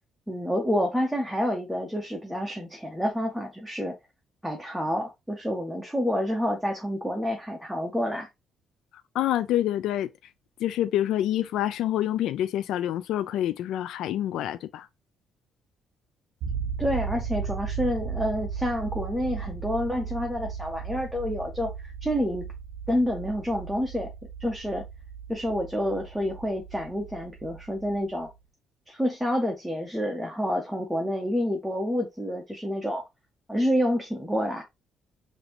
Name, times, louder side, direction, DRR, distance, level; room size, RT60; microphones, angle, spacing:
voice 1, 0.3-3.9 4.4-8.3 16.8-22.4 22.9-24.1 24.4-24.8 25.3-28.3 28.9-33.0 33.5-34.6, equal, ahead, 0.6 m, -28 dB
voice 2, 9.1-10.1 10.6-14.9, left 12 dB, 75° left, 0.3 m, -27 dB
sound 1, 16.4-28.3, right 6 dB, 90° right, 0.6 m, -36 dB
5.1 x 2.6 x 2.9 m
cardioid pair, 170°, 0 cm